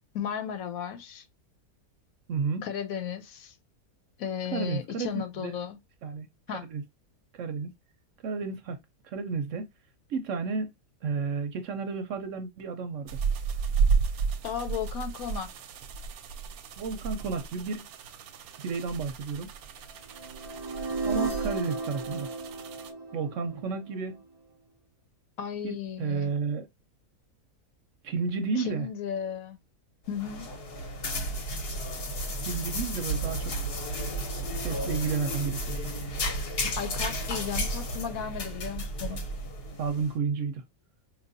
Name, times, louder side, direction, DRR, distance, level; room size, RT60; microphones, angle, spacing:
voice 1, 0.1-1.2 2.6-3.5 4.2-5.8 6.5-6.7 14.4-15.5 25.4-26.3 28.6-29.6 30.1-30.5 36.8-39.2, left 8 dB, 70° left, 1.1 m, -35 dB
voice 2, 2.3-2.7 4.5-5.1 5.4-5.5 6.0-6.3 6.6-6.8 7.4-7.7 8.2-8.8 9.0-9.7 10.1-10.7 11.0-13.1 16.8-17.9 18.6-19.5 21.0-22.3 23.1-24.2 25.6-26.7 28.0-28.9 32.4-33.5 34.6-35.8 39.1-39.2 39.8-40.6, right 5 dB, 65° right, 0.9 m, -32 dB
sound 1, 13.1-22.9, right 5 dB, 85° right, 1.1 m, -32 dB
sound 2, 20.1-24.2, right 4 dB, 40° right, 0.3 m, -34 dB
sound 3, 30.1-40.1, equal, 45° left, 0.9 m, -33 dB
4.6 x 2.5 x 2.6 m
omnidirectional pair, 1.6 m